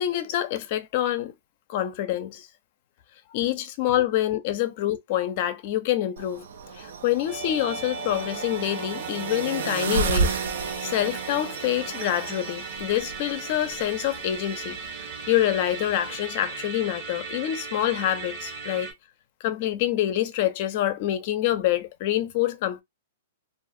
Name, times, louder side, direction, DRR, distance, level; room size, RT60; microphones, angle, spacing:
voice 1, 0.0-1.3 1.7-2.5 3.3-6.4 6.7-10.4 10.8-18.9 19.4-22.8, left 12 dB, 45° left, 0.5 m, -26 dB
sound 1, 6.2-16.2, right 5 dB, 75° right, 0.5 m, -33 dB
Musical instrument, 7.3-18.9, right 5 dB, 55° right, 1.1 m, -37 dB
2.4 x 2.3 x 2.6 m
hypercardioid pair, 150°, 0 cm